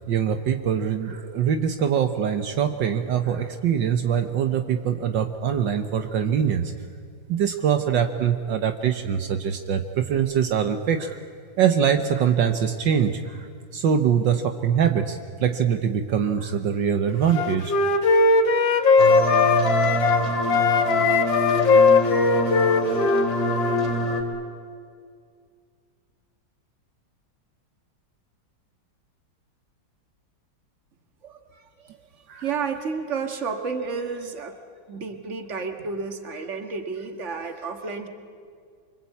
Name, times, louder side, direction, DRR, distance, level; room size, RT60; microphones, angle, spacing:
voice 1, 0.1-6.7 7.3-11.2 11.6-17.7 18.7-18.8 32.3-32.4, right 8 dB, 70° right, 7 dB, 1.7 m, -23 dB
Wind instrument woodwind instrument, 17.3-20.2 20.5-24.0, left 4 dB, 80° left, 2.0 m, -19 dB
sound 1, 19.0-24.2, equal, 20° left, 3.1 m, -25 dB
voice 2, 31.2-34.6 34.9-38.1, right 5 dB, 40° right, 6 dB, 2.0 m, -31 dB
25.0 x 25.0 x 8.4 m, 2.2 s
omnidirectional pair, 2.1 m